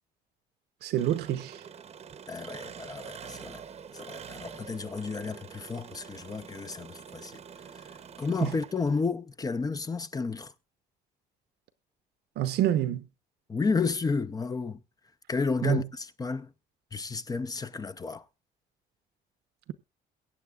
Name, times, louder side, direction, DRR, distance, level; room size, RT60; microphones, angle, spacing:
voice 1, 0.8-1.6 8.4-8.5 12.4-13.0 15.6-15.9, right 12 dB, 75° right, 0.9 m, -27 dB
Engine, 1.0-9.1, right 7 dB, 40° right, 0.9 m, -46 dB
voice 2, 2.3-3.6 3.9-7.4 8.2-10.5 13.5-14.8 15.3-16.5 16.9-18.2, left 4 dB, 20° left, 0.7 m, -32 dB
22.5 x 8.8 x 2.4 m
cardioid pair, 110°, 17 cm